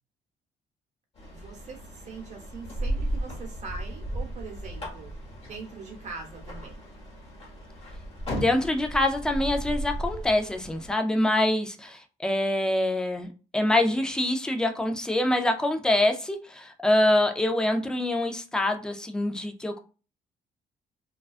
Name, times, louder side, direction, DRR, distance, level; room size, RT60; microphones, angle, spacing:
sound 1, 1.2-10.9, right 1 dB, 40° left, 1.0 m, -35 dB
voice 1, 1.3-5.1 5.4-6.8, right 4 dB, 50° right, 1 dB, 1.0 m, -42 dB
voice 2, 8.4-13.3 13.5-19.8, left 1 dB, 5° left, 5 dB, 0.4 m, -25 dB
2.3 x 2.2 x 2.4 m, 0.35 s
cardioid pair, 100°, 16 cm